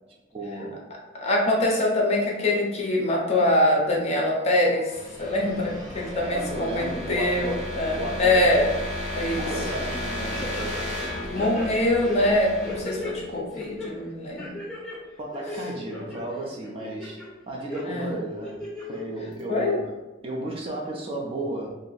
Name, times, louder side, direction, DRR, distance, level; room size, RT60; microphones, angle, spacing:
voice 1, 0.3-0.8 6.1-8.5 9.3-10.8 15.2-17.2 17.5-18.6 18.9-19.9 20.2-21.7, right 1 dB, 30° right, -2 dB, 0.4 m, -33 dB
voice 2, 1.1-4.9 5.2-8.7 9.1-9.4 11.3-14.6 17.9-18.1 19.5-19.8, left 1 dB, 35° left, -1 dB, 0.5 m, -24 dB
sound 1, 4.2-14.0, left 1 dB, 75° right, 1.3 m, -34 dB
sound 2, 10.3-11.1 11.3-13.1 13.5-13.9 14.4-15.0 15.3-16.2 16.6-17.3 17.7-17.8 18.4-19.0 19.4-19.5, left 1 dB, 5° left, 0.9 m, -36 dB
2.5 x 2.0 x 3.8 m, 1.1 s
head